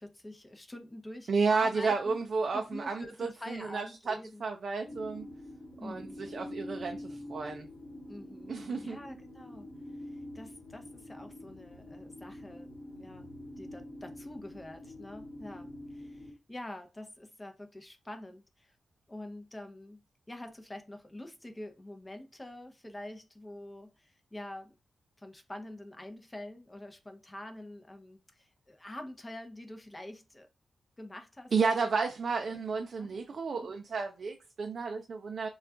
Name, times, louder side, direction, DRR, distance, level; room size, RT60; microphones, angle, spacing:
voice 1, 0.0-2.2 2.5-4.4 4.9-5.1 5.8-6.5 8.1-8.5 8.8-9.7 10.1-18.8 19.1-20.0 20.3-24.7 25.2-30.5 31.0-32.1 32.5-32.6 33.0-33.1 33.5-33.7, left 1 dB, 20° left, 0.6 m, -46 dB
voice 2, 1.3-4.1 4.4-5.3 5.8-7.7 8.5-9.0 31.5-35.5, right 4 dB, 60° right, 0.4 m, -32 dB
sound 1, 4.8-16.3, left 1 dB, 40° left, 1.1 m, -46 dB
2.3 x 2.2 x 3.6 m
cardioid pair, 85°, 0 cm